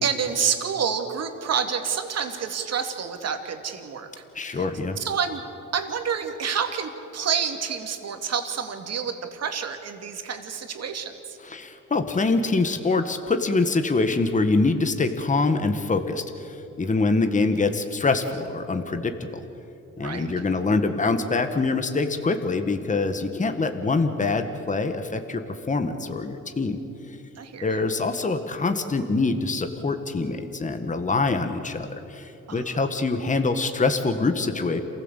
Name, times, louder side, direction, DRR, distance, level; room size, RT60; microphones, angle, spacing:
voice 1, 0.0-4.1 4.4-4.7 5.0-5.4 5.7-11.4 20.0-20.3 27.4-27.9 32.5-32.8, right 7 dB, 55° right, 5 dB, 2.5 m, -28 dB
voice 2, 4.3-5.0 11.4-19.4 20.0-25.4 25.7-26.8 27.6-34.8, left 3 dB, 25° left, 7 dB, 1.6 m, -24 dB
28.0 x 16.0 x 8.2 m, 2.9 s
cardioid pair, 90°, 30 cm